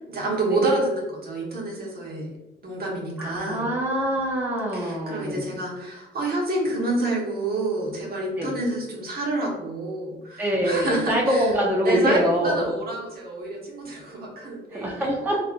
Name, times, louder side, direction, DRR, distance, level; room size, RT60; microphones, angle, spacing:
voice 1, 0.0-2.3 2.6-3.6 4.7-11.5 11.8-15.1, right 2 dB, 50° right, -3 dB, 1.2 m, -28 dB
voice 2, 3.2-5.4 8.4-8.5 10.4-12.6 14.7-15.4, equal, 10° right, -2 dB, 0.5 m, -24 dB
3.3 x 2.4 x 2.5 m, 1.0 s
cardioid pair, 90°, 20 cm